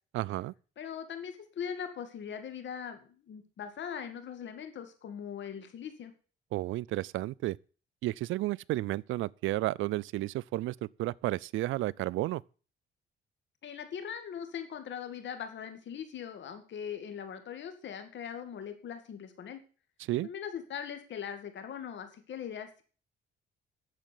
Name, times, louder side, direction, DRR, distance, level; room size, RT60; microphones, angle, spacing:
voice 1, 0.1-0.5 6.5-7.6 8.0-12.4 20.0-20.3, right 17 dB, 85° right, 0.5 m, -32 dB
voice 2, 0.8-6.1 13.6-19.6 20.2-22.8, left 8 dB, 65° left, 2.4 m, -40 dB
10.5 x 7.5 x 7.8 m
cardioid pair, 90°, 20 cm